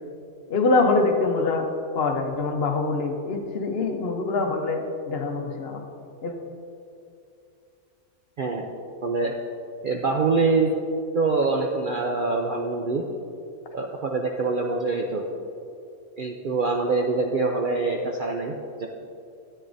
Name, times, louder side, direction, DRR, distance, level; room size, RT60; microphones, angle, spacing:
voice 1, 0.5-1.7 1.9-5.8 6.2-6.3, left 3 dB, 50° left, 3 dB, 0.9 m, -24 dB
voice 2, 8.4-8.7 9.0-9.3 9.8-10.7 11.1-13.0 13.7-15.3 16.2-18.9, right 3 dB, 60° right, 1 dB, 0.5 m, -25 dB
13.0 x 8.7 x 2.6 m, 2.6 s
omnidirectional pair, 1.5 m